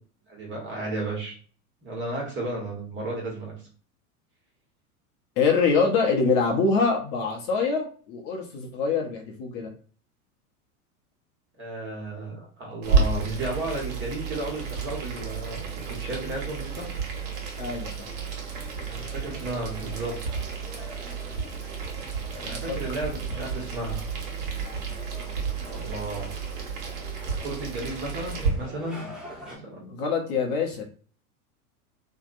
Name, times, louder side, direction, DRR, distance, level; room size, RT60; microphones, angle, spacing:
voice 1, 0.3-1.3 1.8-3.5 11.6-16.9 18.9-20.1 22.4-24.0 25.6-26.3 27.4-29.1 29.4-29.9, right 2 dB, 25° right, -2 dB, 1.2 m, -33 dB
voice 2, 5.4-9.7 17.6-18.1 22.4-22.8 29.9-30.8, left 4 dB, 45° left, 1 dB, 0.7 m, -25 dB
Boiling, 12.8-28.5, right 5 dB, 50° right, 1.0 m, -31 dB
sound 1, 18.5-29.6, left 1 dB, ahead, 0.7 m, -46 dB
2.7 x 2.1 x 2.5 m, 0.42 s
figure-of-eight pair, 90°, 45 cm